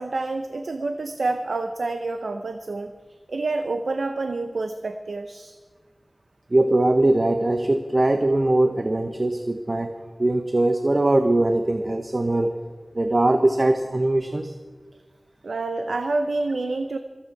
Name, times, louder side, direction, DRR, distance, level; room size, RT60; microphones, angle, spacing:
voice 1, 0.0-3.0 3.3-5.6 15.4-17.0, right 3 dB, 90° right, 7 dB, 0.6 m, -28 dB
voice 2, 6.5-9.9 10.2-12.5 12.9-14.5, right 2 dB, 40° right, 7 dB, 0.7 m, -21 dB
24.5 x 8.7 x 4.7 m, 1.5 s
wide cardioid pair, 75°, 0 cm